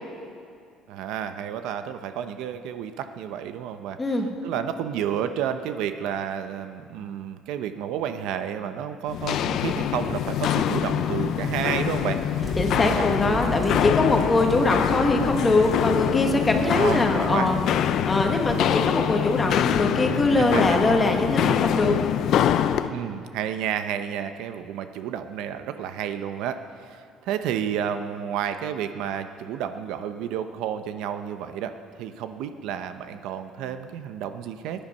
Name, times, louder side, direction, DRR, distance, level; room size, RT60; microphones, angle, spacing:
voice 1, 0.9-4.0 4.4-13.8 16.6-17.5 20.4-20.8 22.9-34.8, right 9 dB, 70° right, 9 dB, 0.7 m, -31 dB
Walk footsteps, 9.1-22.9, left 9 dB, 50° left, 0.5 m, -24 dB
sound 1, 12.3-20.0, right 1 dB, 5° right, 2.0 m, -38 dB
voice 2, 12.6-17.6 18.1-22.0, left 2 dB, 15° left, 3 dB, 1.2 m, -22 dB
20.0 x 10.5 x 5.4 m, 2.3 s
cardioid pair, 175°, 0 cm